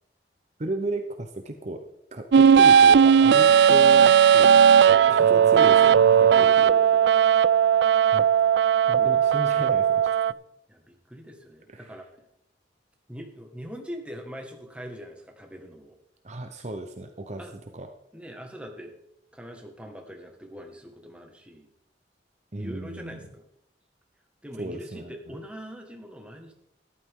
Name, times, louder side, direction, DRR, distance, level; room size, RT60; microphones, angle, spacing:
voice 1, 0.6-1.8 2.1-4.7 5.1-6.4 8.1-8.3 8.9-10.1 11.7-11.9 16.2-17.4 17.7-17.9 22.5-23.2 24.6-25.1, right 1 dB, 40° right, 6 dB, 0.8 m, -34 dB
sound 1, 2.3-10.3, right 8 dB, 70° right, 0.3 m, -17 dB
voice 2, 6.3-7.1 9.0-9.2 10.7-12.1 13.1-16.0 17.4-17.5 18.1-18.9 19.3-21.7 22.6-23.4 24.4-26.5, equal, 5° right, 2 dB, 1.7 m, -42 dB
13.5 x 11.5 x 3.7 m, 0.80 s
head